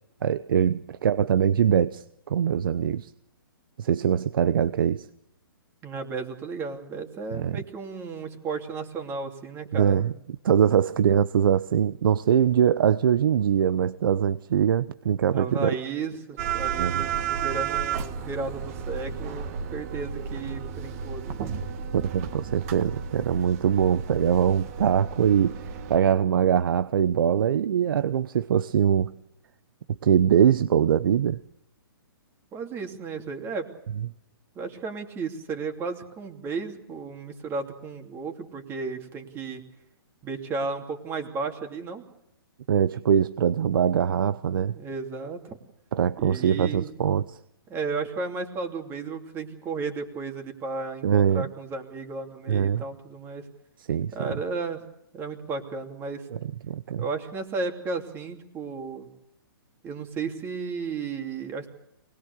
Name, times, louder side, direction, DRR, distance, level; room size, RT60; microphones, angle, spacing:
voice 1, 0.2-3.1 3.8-5.1 7.3-7.6 9.7-10.1 10.4-15.7 16.8-17.0 21.9-29.1 30.0-31.4 42.7-44.7 45.9-47.4 51.0-51.5 52.5-52.8 53.9-54.3 56.7-57.1, right 8 dB, 60° right, 0.8 m, -22 dB
voice 2, 5.8-10.2 15.3-21.4 32.5-33.7 34.5-39.6 40.2-42.0 44.7-45.6 46.2-46.9 47.7-53.4 54.1-54.8 55.1-56.3 57.0-59.1 59.8-61.7, right 4 dB, 20° right, 2.9 m, -34 dB
sound 1, 16.4-26.0, right 7 dB, 35° right, 1.9 m, -32 dB
24.5 x 20.5 x 6.8 m
hypercardioid pair, 150°, 13 cm